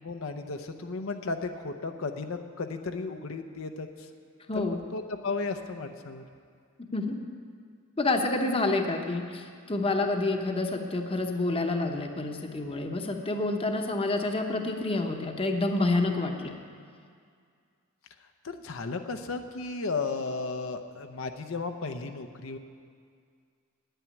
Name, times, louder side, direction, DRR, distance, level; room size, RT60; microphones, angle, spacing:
voice 1, 0.0-4.1 4.5-6.2 18.4-22.6, left 3 dB, 70° left, 6 dB, 0.7 m, -34 dB
voice 2, 8.0-16.5, left 2 dB, 25° left, 4 dB, 0.9 m, -28 dB
9.1 x 9.1 x 9.6 m, 2.2 s
head